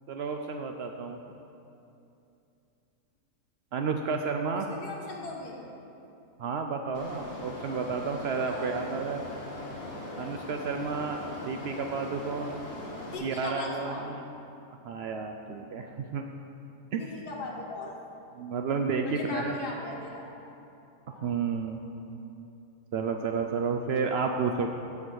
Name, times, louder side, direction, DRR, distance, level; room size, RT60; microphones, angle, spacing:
voice 1, 0.1-1.2 3.7-4.7 6.4-9.3 10.2-11.2 11.4-12.6 13.2-14.2 14.8-16.3 16.9-17.0 18.3-19.5 21.1-21.8 22.9-24.7, right 5 dB, 90° right, 4 dB, 0.5 m, -31 dB
voice 2, 4.5-5.6 8.4-8.7 13.1-14.1 17.0-18.0 19.0-20.3 21.1-21.3, left 2 dB, 85° left, -3 dB, 1.8 m, -38 dB
sound 1, 6.9-13.1, left 2 dB, 70° left, 2.1 m, -40 dB
14.0 x 4.9 x 6.2 m, 2.8 s
omnidirectional pair, 1.7 m